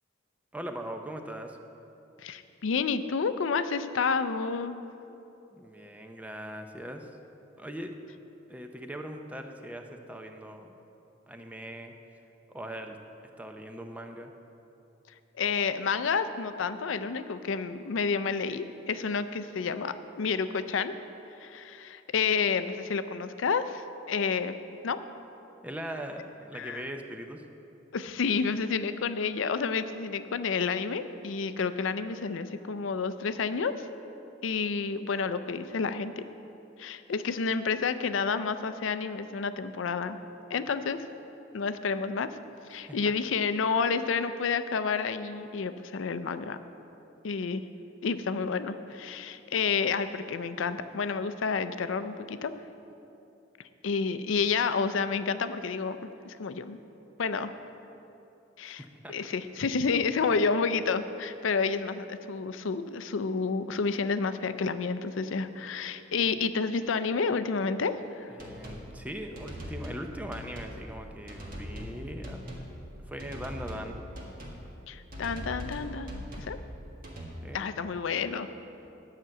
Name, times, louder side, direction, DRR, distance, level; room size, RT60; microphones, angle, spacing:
voice 1, 0.5-1.6 5.5-7.1 7.6-7.9 8.5-10.8 11.3-11.9 12.5-13.0 13.4-14.3 25.6-27.4 42.7-43.0 58.9-59.3 66.3-66.4 68.3-72.4 73.1-74.0 77.4-77.6, right 1 dB, 5° right, 5 dB, 0.6 m, -40 dB
voice 2, 2.2-4.8 15.4-20.9 21.4-24.6 24.8-25.0 26.5-26.8 27.9-33.7 34.4-36.2 36.8-40.2 40.5-41.0 41.5-42.4 42.7-46.6 47.2-47.6 48.0-52.5 53.8-56.0 56.2-56.8 57.2-57.5 58.6-58.8 59.1-68.3 74.9-76.6 77.5-78.5, left 5 dB, 75° left, 12 dB, 0.5 m, -30 dB
sound 1, 68.4-68.8 69.3-70.0 70.3-70.8 71.3-72.0 72.2-72.7 73.2-73.9 74.1-74.6 75.1-76.6 77.0-77.3, equal, 45° right, 1.7 m, -40 dB
10.0 x 5.9 x 7.7 m, 2.9 s
head